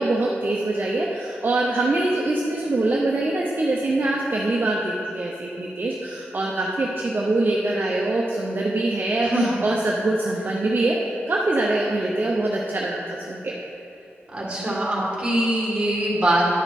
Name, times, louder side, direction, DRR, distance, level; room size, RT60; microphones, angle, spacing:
voice 1, 0.0-13.5, right 2 dB, 45° right, -3 dB, 0.7 m, -24 dB
voice 2, 9.2-9.6 14.3-16.5, right 1 dB, 20° right, -5 dB, 2.0 m, -22 dB
11.0 x 5.1 x 4.2 m, 2.7 s
wide cardioid pair, 115°, 5 cm